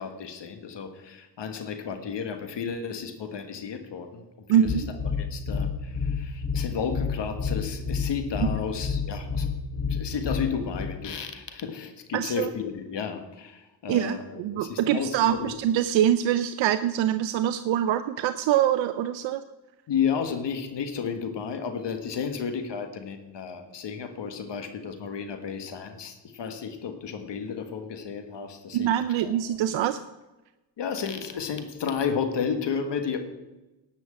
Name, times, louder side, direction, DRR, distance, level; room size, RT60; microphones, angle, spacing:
voice 1, 0.0-4.8 5.2-9.5 9.8-15.6 19.9-28.9 29.2-29.3 30.8-33.3, left 6 dB, 70° left, 7 dB, 1.6 m, -32 dB
voice 2, 4.5-4.9 8.4-8.6 12.1-12.5 13.9-19.4 28.7-30.0, right 11 dB, 85° right, 10 dB, 0.6 m, -24 dB
sound 1, 4.7-11.0, left 5 dB, 20° left, 1.1 m, -29 dB
11.5 x 6.3 x 8.7 m, 1.0 s
cardioid pair, 75°, 44 cm